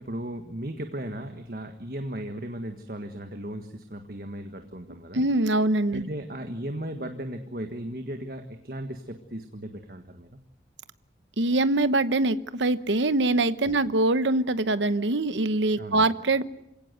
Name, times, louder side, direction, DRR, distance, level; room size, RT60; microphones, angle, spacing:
voice 1, 0.0-5.2 5.9-10.4 13.6-13.7 15.8-16.1, right 1 dB, 55° right, 6 dB, 1.6 m, -36 dB
voice 2, 5.1-6.1 11.4-16.4, right 2 dB, 85° right, 13 dB, 1.0 m, -23 dB
27.0 x 17.5 x 8.0 m, 0.86 s
head